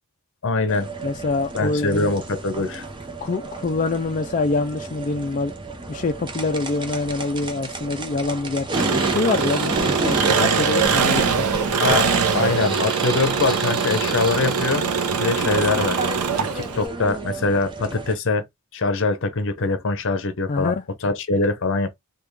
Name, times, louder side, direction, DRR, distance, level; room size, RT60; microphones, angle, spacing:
voice 1, 0.4-0.9 1.5-2.8 11.8-14.9 15.2-16.0 16.4-18.5 18.7-20.7 21.0-21.9, left 3 dB, 60° left, 0.7 m, -23 dB
sound 1, 0.7-18.1, right 3 dB, 20° right, 0.6 m, -32 dB
voice 2, 1.0-2.2 3.2-5.5 5.9-11.5 20.5-20.8, left 3 dB, 35° left, 0.4 m, -25 dB
Engine, 8.7-16.9, right 6 dB, 85° right, 0.6 m, -22 dB
3.5 x 2.3 x 3.2 m
head